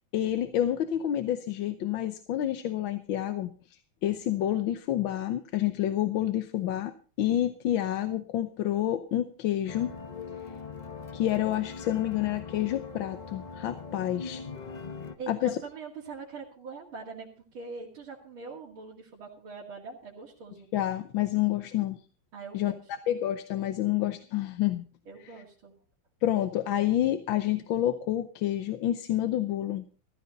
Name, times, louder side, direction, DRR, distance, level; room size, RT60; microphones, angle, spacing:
voice 1, 0.1-9.9 11.1-14.4 15.3-15.6 20.7-22.0 22.5-22.7 23.1-24.9 25.2-25.3 26.2-29.8, left 12 dB, 70° left, 10 dB, 1.6 m, -28 dB
sound 1, 9.7-15.2, left 5 dB, 30° left, 0.8 m, -41 dB
voice 2, 15.2-20.7 22.3-22.7 25.1-25.7, right 4 dB, 75° right, -5 dB, 3.3 m, -43 dB
14.5 x 14.5 x 4.1 m, 0.39 s
omnidirectional pair, 2.3 m